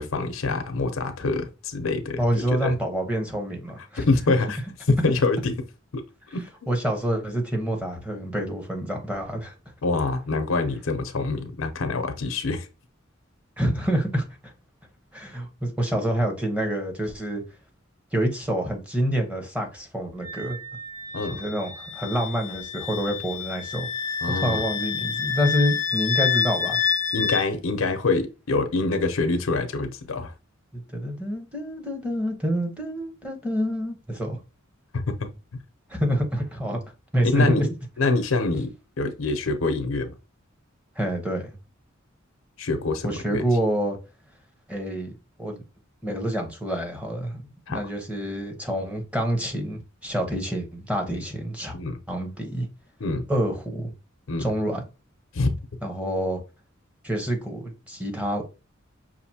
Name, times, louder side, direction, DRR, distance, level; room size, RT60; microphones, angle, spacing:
voice 1, 0.0-2.2 2.6-2.8 4.0-4.6 4.9-5.5 5.9-6.0 6.3-6.7 9.8-12.7 21.1-21.4 24.2-24.6 27.1-30.3 35.1-35.3 37.3-37.6 38.0-38.7 39.0-40.1 42.6-43.4 47.7-47.8 51.1-51.2 51.7-52.0 53.0-53.3 54.3-54.5 55.3-55.6, left 3 dB, 85° left, 0.6 m, -25 dB
voice 2, 2.2-4.0 6.7-9.5 13.6-14.5 15.1-17.4 18.1-20.6 21.3-23.9 24.3-26.8 30.7-34.4 35.9-36.8 37.1-37.7 41.0-41.6 43.0-44.0 44.7-45.6 46.0-51.7 52.1-52.7 53.3-53.9 54.4-54.8 55.8-56.4 57.0-58.4, equal, 5° right, 0.8 m, -27 dB
Wind instrument woodwind instrument, 20.2-27.5, left 7 dB, 35° left, 0.5 m, -28 dB
5.7 x 2.6 x 2.7 m
head